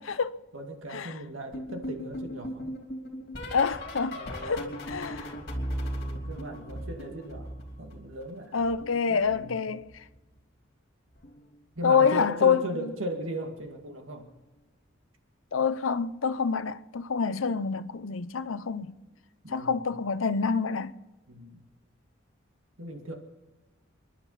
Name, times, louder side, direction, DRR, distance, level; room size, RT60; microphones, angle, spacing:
voice 1, 0.0-0.3 0.9-1.1 3.5-4.1 4.5-5.3 8.5-9.8 11.8-12.6 15.5-18.9 19.5-20.9, left 6 dB, 80° left, 0.7 m, -27 dB
voice 2, 0.5-2.7 4.1-4.8 5.9-8.6 9.1-9.6 11.8-14.3 19.4-19.9 21.3-21.7 22.8-23.1, right 1 dB, 80° right, 2.2 m, -38 dB
sound 1, 1.5-8.3 8.6-10.2 11.2-11.5 11.8-12.1 13.7-13.9 14.3-14.5 16.1-16.2, equal, 50° left, 3.0 m, -38 dB
29.0 x 11.0 x 4.1 m
head